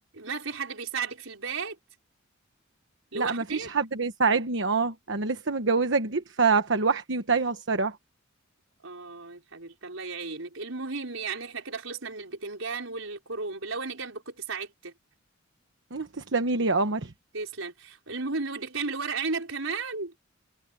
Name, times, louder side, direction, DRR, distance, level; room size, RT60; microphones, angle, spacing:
voice 1, 0.2-1.8 3.1-3.7 8.8-14.9 17.3-20.1, right 4 dB, 85° right, 4.7 m, -34 dB
voice 2, 3.1-8.0 15.9-17.1, right 4 dB, 65° right, 1.2 m, -26 dB
head